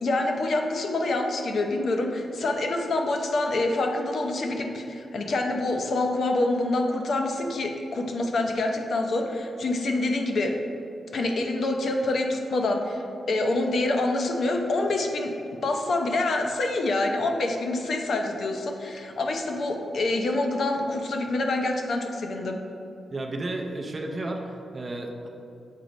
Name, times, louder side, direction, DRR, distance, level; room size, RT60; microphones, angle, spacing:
voice 1, 0.0-10.5 11.1-15.3 15.6-22.6, left 2 dB, 55° left, 3 dB, 0.6 m, -26 dB
voice 2, 23.1-25.3, right 2 dB, 25° right, 2 dB, 0.5 m, -33 dB
7.3 x 3.0 x 5.0 m, 2.7 s
wide cardioid pair, 165°, 0 cm